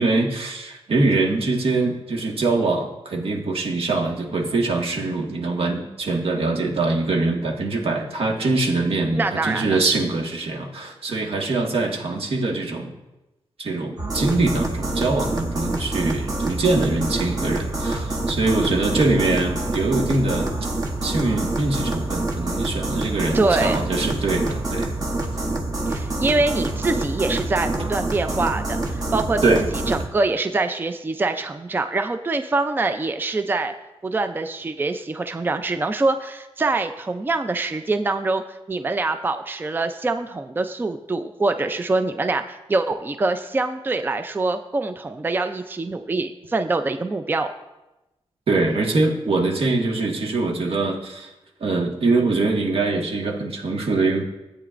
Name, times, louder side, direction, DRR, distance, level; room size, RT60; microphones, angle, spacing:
voice 1, 0.0-12.9 13.6-20.5 21.0-24.9 29.4-29.6 48.5-51.3 51.6-54.3, right 3 dB, 65° right, 0 dB, 1.6 m, -23 dB
voice 2, 9.2-9.8 23.3-23.8 25.9-33.7 34.0-47.5, right 3 dB, 20° right, 8 dB, 0.4 m, -24 dB
sound 1, 14.0-30.1, right 2 dB, 35° right, 1.1 m, -26 dB
14.0 x 8.7 x 2.5 m, 1.0 s
wide cardioid pair, 125°, 10 cm